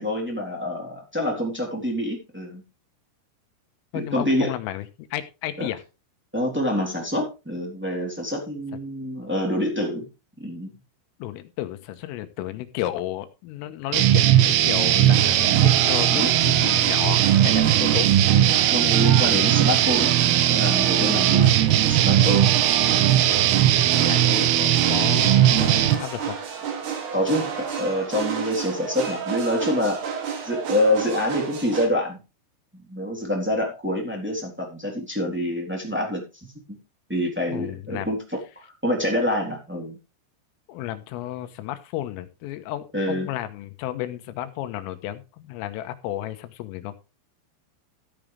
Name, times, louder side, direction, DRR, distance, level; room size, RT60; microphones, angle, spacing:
voice 1, 0.0-2.6 3.9-4.5 5.6-5.7 6.3-10.1 10.4-10.7 16.1-16.3 18.6-22.5 27.1-30.0 30.4-32.2 32.7-36.8 37.1-40.0 42.9-43.3, left 1 dB, 5° right, -1 dB, 2.4 m, -26 dB
voice 2, 3.9-5.8 11.2-18.1 23.8-26.4 37.5-38.1 40.7-46.9, left 13 dB, 85° left, 10 dB, 3.7 m, -33 dB
sound 1, 13.9-26.0, right 12 dB, 90° right, 2.3 m, -18 dB
sound 2, 15.1-31.9, right 6 dB, 55° right, 3.9 m, -31 dB
14.5 x 9.0 x 3.4 m, 0.29 s
omnidirectional pair, 5.9 m